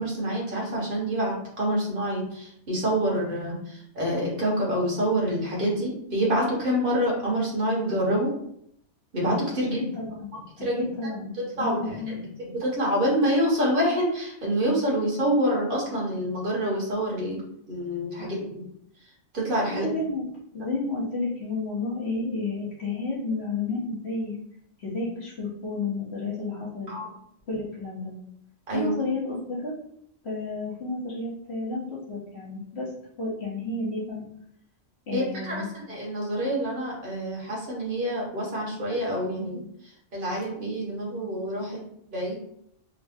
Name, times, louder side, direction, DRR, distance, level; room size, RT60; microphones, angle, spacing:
voice 1, 0.0-8.3 9.1-9.8 10.6-10.9 11.5-12.2 12.5-17.4 17.7-18.6 19.3-19.8 26.9-27.1 28.7-28.9 35.1-39.6 40.1-41.8 42.1-42.3, equal, 45° right, -4 dB, 1.4 m, -27 dB
voice 2, 9.7-11.3 11.6-12.2 18.2-18.3 19.8-20.2 20.5-24.4 24.8-26.9 27.5-28.1 28.7-29.7 30.2-32.9 33.2-34.2 35.1-35.7, left 3 dB, 60° left, -6 dB, 1.4 m, -31 dB
3.8 x 2.1 x 3.5 m, 0.71 s
omnidirectional pair, 1.2 m